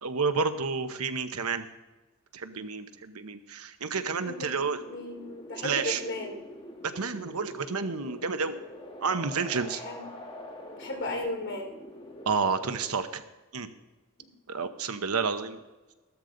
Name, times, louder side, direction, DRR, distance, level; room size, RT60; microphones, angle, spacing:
voice 1, 0.0-1.6 2.3-4.8 5.6-6.0 6.9-8.5 9.0-9.8 12.3-13.2 13.5-13.7 14.5-15.6, right 5 dB, 75° right, 9 dB, 1.0 m, -30 dB
voice 2, 4.1-6.4 9.5-10.0 10.7-11.7, left 1 dB, 55° left, 1 dB, 3.3 m, -36 dB
sound 1, 4.1-12.9, left 1 dB, 25° left, 1.9 m, -45 dB
15.5 x 13.0 x 3.9 m, 1.2 s
head